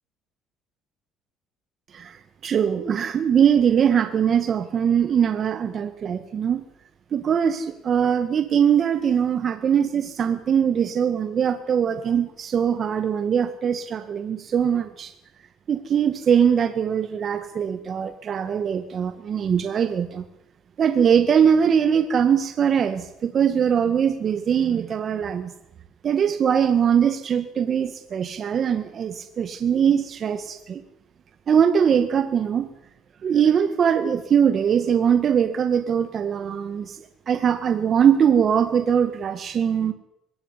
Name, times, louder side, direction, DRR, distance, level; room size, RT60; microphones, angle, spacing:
voice 1, 2.4-6.6 7.1-15.1 15.7-20.3 20.8-25.5 26.0-30.8 31.5-32.7 33.2-37.0 37.3-39.9, right 8 dB, 45° right, 8 dB, 1.8 m, -21 dB
21.5 x 17.0 x 9.9 m, 0.84 s
cardioid pair, 105°, 0 cm